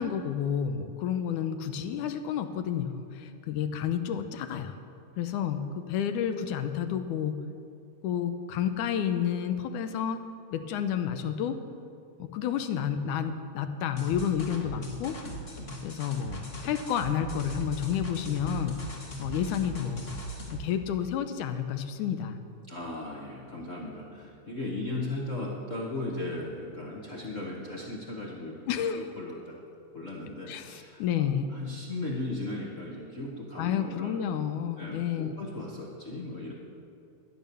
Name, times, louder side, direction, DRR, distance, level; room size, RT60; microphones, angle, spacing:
voice 1, 0.0-4.7 5.2-7.4 8.0-10.2 10.5-11.6 12.2-15.2 15.8-18.8 19.2-20.1 20.5-22.4 28.7-29.1 30.5-31.5 33.6-35.4, left 8 dB, 80° left, 8 dB, 2.2 m, -30 dB
sound 1, 14.0-20.7, right 1 dB, 30° left, 1.2 m, -39 dB
voice 2, 22.7-28.6 28.9-29.6 29.9-34.3 34.8-36.5, left 2 dB, 65° left, -3 dB, 0.7 m, -37 dB
12.5 x 10.5 x 6.8 m, 2.5 s
omnidirectional pair, 3.7 m